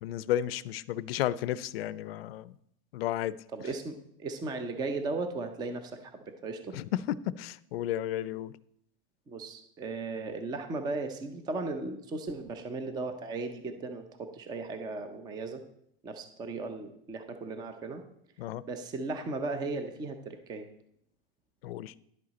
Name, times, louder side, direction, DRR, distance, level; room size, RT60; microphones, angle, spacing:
voice 1, 0.0-2.5 2.9-3.4 6.7-8.5 18.4-18.6 21.6-21.9, left 12 dB, 90° left, 18 dB, 0.5 m, -33 dB
voice 2, 3.5-6.8 9.3-15.6 16.0-18.0 18.7-20.7, right 3 dB, 15° right, 8 dB, 0.5 m, -36 dB
10.5 x 7.6 x 4.1 m, 0.74 s
supercardioid pair, 155°, 29 cm